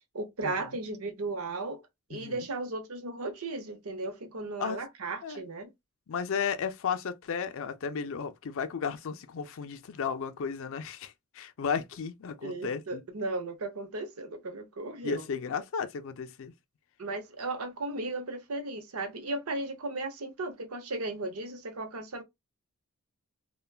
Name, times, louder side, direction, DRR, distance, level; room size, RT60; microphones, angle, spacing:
voice 1, 0.1-1.8 2.1-5.7 12.4-15.2 17.0-22.2, right 2 dB, 70° right, 0.7 m, -36 dB
voice 2, 2.1-2.5 4.6-4.8 5.2-5.4 6.1-13.0 15.0-16.5, left 6 dB, 60° left, 0.4 m, -34 dB
3.3 x 2.2 x 2.3 m
head